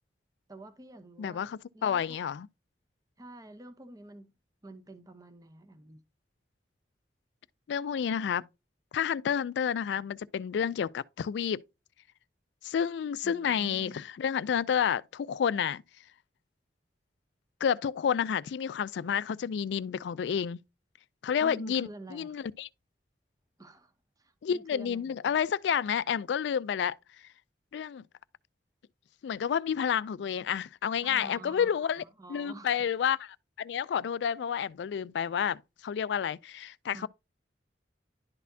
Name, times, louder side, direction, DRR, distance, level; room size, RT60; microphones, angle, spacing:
voice 1, 0.5-2.2 3.2-4.3 4.6-6.0 13.2-14.0 21.4-22.4 23.6-25.3 31.0-32.8 36.9-37.1, right 1 dB, 20° right, 0.8 m, -48 dB
voice 2, 1.2-2.5 7.7-8.5 8.9-11.6 12.6-15.8 17.6-20.6 21.2-22.7 24.4-27.0 27.7-28.0 29.2-32.0 32.3-33.3 33.6-37.1, left 8 dB, 70° left, 0.3 m, -30 dB
11.0 x 4.1 x 2.7 m
head